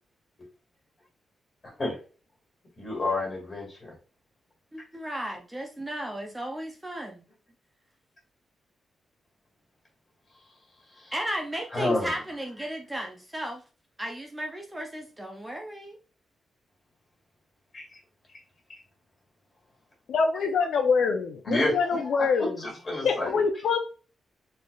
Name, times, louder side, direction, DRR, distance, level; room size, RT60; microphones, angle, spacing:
voice 1, 2.8-3.9 11.0-11.1 11.7-12.1 17.7-17.8 21.5-23.4, left 2 dB, 25° left, -2 dB, 2.0 m, -29 dB
voice 2, 4.7-7.2 11.1-13.6 14.0-16.0, right 1 dB, 10° right, 1 dB, 0.5 m, -35 dB
voice 3, 20.1-22.6 23.0-23.8, left 5 dB, 75° left, 4 dB, 0.5 m, -25 dB
4.0 x 3.2 x 2.3 m, 0.36 s
wide cardioid pair, 155°, 0 cm